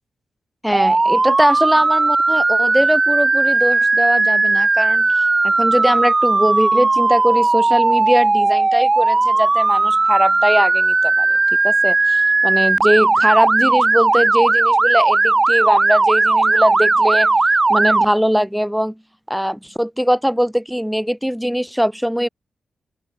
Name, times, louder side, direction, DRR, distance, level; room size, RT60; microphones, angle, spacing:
voice 1, 0.6-11.3 11.6-17.4 17.7-19.0 19.3-22.3, equal, ahead, 0.6 m, -20 dB
Motor vehicle (road) / Siren, 0.7-18.0, right 3 dB, 30° right, 1.6 m, -16 dB
open air
cardioid pair, 70°, 0 cm